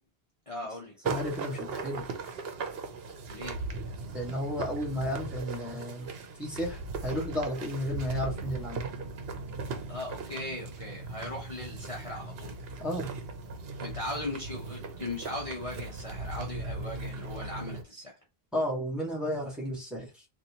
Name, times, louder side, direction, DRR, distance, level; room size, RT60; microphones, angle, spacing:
voice 1, 0.5-1.0 3.3-3.6 9.9-12.6 13.8-18.2, left 1 dB, 35° left, 1.0 m, -38 dB
voice 2, 1.0-2.0 4.1-6.1 6.4-8.9 12.8-13.1 18.5-20.2, equal, ahead, 1.5 m, -33 dB
sound 1, 1.0-17.8, right 3 dB, 65° right, 0.9 m, -38 dB
4.0 x 2.6 x 2.8 m
omnidirectional pair, 1.1 m